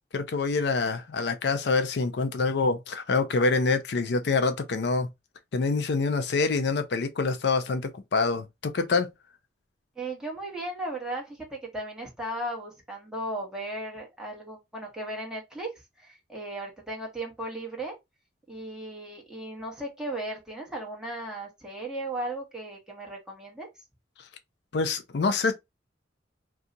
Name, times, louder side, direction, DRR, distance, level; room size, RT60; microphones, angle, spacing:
voice 1, 0.1-5.1 5.5-9.1 24.2-24.3 24.7-25.5, left 4 dB, 65° left, 0.4 m, -26 dB
voice 2, 10.0-15.7 16.0-17.9 18.5-23.7, right 1 dB, 5° right, 1.2 m, -36 dB
2.7 x 2.3 x 3.8 m
head